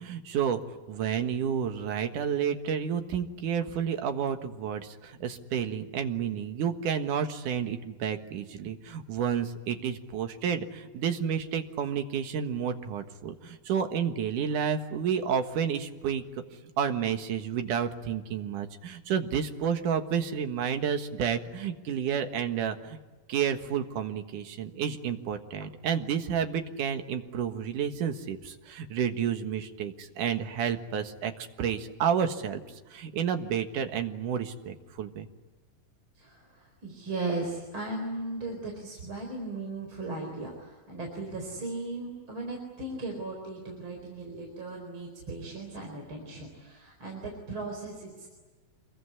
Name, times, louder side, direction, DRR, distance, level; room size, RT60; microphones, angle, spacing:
voice 1, 0.0-16.2 16.6-23.0 23.3-31.3 31.6-32.6 32.9-35.3, right 8 dB, 65° right, 7 dB, 2.9 m, -30 dB
voice 2, 36.2-48.3, right 2 dB, 35° right, 1 dB, 5.0 m, -37 dB
27.0 x 22.5 x 9.8 m, 1.3 s
omnidirectional pair, 4.1 m